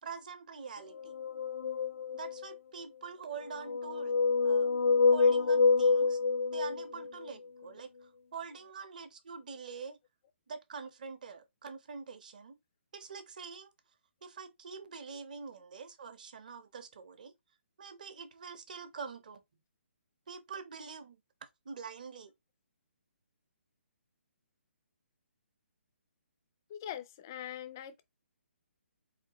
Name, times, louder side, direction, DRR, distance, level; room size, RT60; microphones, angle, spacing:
voice 1, 0.0-1.1 2.1-4.1 4.4-4.7 5.1-6.2 6.5-10.0 10.5-12.5 12.9-13.7 14.2-17.3 17.8-19.4 20.3-21.2 21.7-22.3, right 5 dB, 40° right, 0.8 m, -45 dB
sound 1, 0.9-2.6 3.4-7.3, left 4 dB, 75° left, 0.5 m, -27 dB
voice 2, 26.7-28.0, left 11 dB, 15° left, 0.3 m, -42 dB
4.2 x 4.1 x 2.9 m
hypercardioid pair, 175°, 7 cm